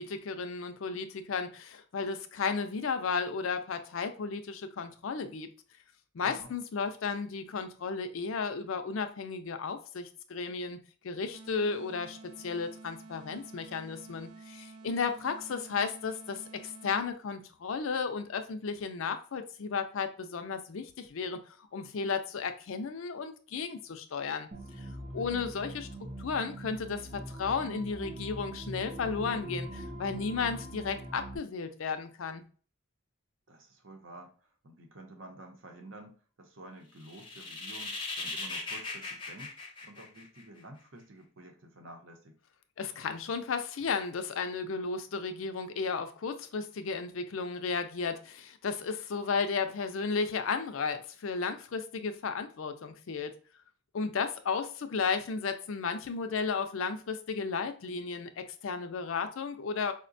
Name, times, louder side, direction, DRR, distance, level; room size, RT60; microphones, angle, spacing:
voice 1, 0.0-5.5 6.1-10.8 11.0-24.5 24.8-24.9 25.1-25.9 26.2-32.4 42.8-53.3 53.9-59.9, left 5 dB, 70° left, 8 dB, 0.4 m, -34 dB
voice 2, 6.2-6.5 25.1-25.3 33.5-39.5 39.8-42.4, right 1 dB, 65° right, 4 dB, 0.7 m, -50 dB
sound 1, 11.3-17.3, right 3 dB, 85° right, 0.4 m, -50 dB
sound 2, 24.5-31.4, right 1 dB, 30° right, 0.5 m, -42 dB
sound 3, 37.0-40.6, left 3 dB, 25° left, 0.6 m, -39 dB
4.7 x 2.1 x 2.5 m, 0.40 s
head